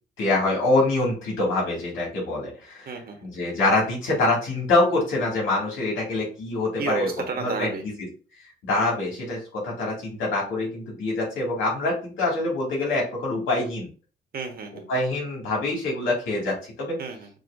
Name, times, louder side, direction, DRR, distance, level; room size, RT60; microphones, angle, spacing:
voice 1, 0.2-2.9 3.2-7.1 7.4-7.7 8.6-13.9 14.9-17.0, left 2 dB, 85° left, -3 dB, 2.4 m, -25 dB
voice 2, 2.9-3.3 6.8-7.8 14.3-14.9 17.0-17.3, right 4 dB, 50° right, 4 dB, 1.2 m, -32 dB
6.2 x 2.9 x 2.7 m, 0.38 s
cardioid pair, 90°, 20 cm